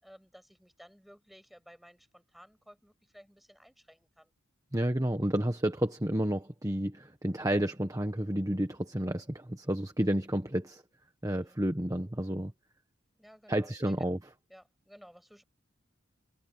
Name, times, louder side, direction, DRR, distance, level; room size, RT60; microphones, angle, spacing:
voice 1, 0.0-4.3 11.3-11.6 13.1-14.1 14.5-15.4, equal, ahead, 7.0 m, -56 dB
voice 2, 4.7-10.8 11.2-12.5 13.5-14.2, right 1 dB, 15° right, 1.4 m, -30 dB
head